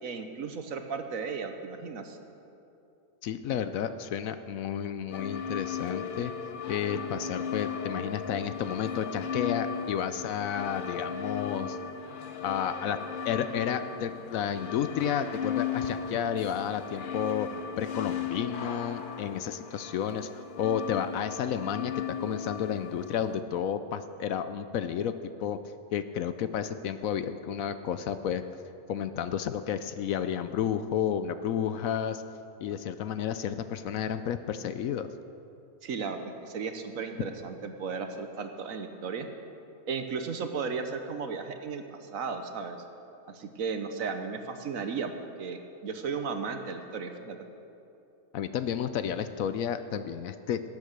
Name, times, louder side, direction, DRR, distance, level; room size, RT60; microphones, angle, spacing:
voice 1, 0.0-2.2 35.8-39.3 39.9-42.8 43.3-45.1 45.4-47.4, right 5 dB, 60° right, 7 dB, 1.3 m, -35 dB
voice 2, 3.2-6.3 6.7-11.8 12.4-25.1 25.4-25.6 25.9-28.4 28.9-32.2 32.6-35.1 48.3-50.6, left 8 dB, 70° left, 11 dB, 0.9 m, -31 dB
sound 1, 5.1-23.4, left 7 dB, 50° left, 0.6 m, -36 dB
18.5 x 8.4 x 6.6 m, 2.7 s
omnidirectional pair, 1.6 m